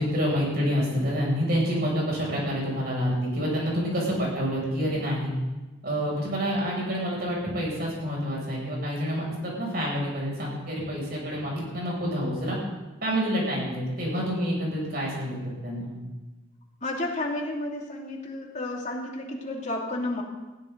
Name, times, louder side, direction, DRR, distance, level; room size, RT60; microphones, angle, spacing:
voice 1, 0.0-5.3 5.8-12.6 13.0-15.4 15.6-15.9, equal, 50° right, -3 dB, 7.0 m, -28 dB
voice 2, 16.8-20.2, left 2 dB, 35° left, -1 dB, 2.8 m, -31 dB
19.5 x 16.5 x 4.0 m, 1.1 s
head